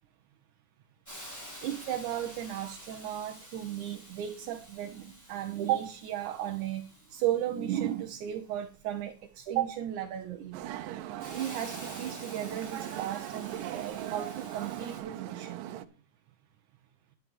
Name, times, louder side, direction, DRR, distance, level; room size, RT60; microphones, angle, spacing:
Hiss, 1.1-15.0, equal, 5° left, 4.0 m, -50 dB
voice 1, 1.6-10.7 11.3-15.6, right 11 dB, 70° right, 2.3 m, -35 dB
sound 1, 10.5-15.8, right 12 dB, 90° right, 2.5 m, -39 dB
10.5 x 9.9 x 4.7 m
omnidirectional pair, 3.8 m